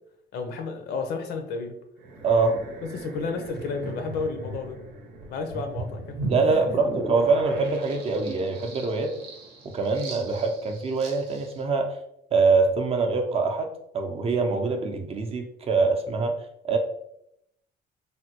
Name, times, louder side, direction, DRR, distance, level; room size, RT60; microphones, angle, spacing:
voice 1, 0.3-1.7 2.9-4.8 5.2-6.3, left 4 dB, 70° left, 5 dB, 0.6 m, -32 dB
sound 1, 2.0-11.6, right 2 dB, 75° right, 0.7 m, -38 dB
voice 2, 2.2-2.6 6.3-9.2 9.6-12.0 12.3-16.4 16.6-16.8, right 4 dB, 35° right, 4 dB, 0.5 m, -24 dB
3.3 x 2.2 x 2.8 m, 0.78 s
cardioid pair, 110°, 17 cm